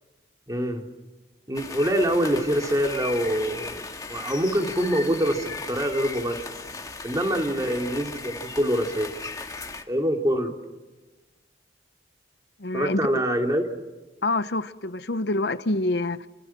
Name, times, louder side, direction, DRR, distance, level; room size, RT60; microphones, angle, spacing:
voice 1, 0.5-0.9 1.5-3.8 4.1-6.5 7.0-9.1 9.9-10.5 12.7-13.6, equal, 20° right, 3.0 m, -25 dB
sound 1, 1.5-9.8, left 3 dB, 20° left, 2.0 m, -37 dB
voice 2, 12.6-13.0 14.2-16.3, left 2 dB, 65° left, 0.9 m, -26 dB
29.5 x 26.5 x 6.1 m
head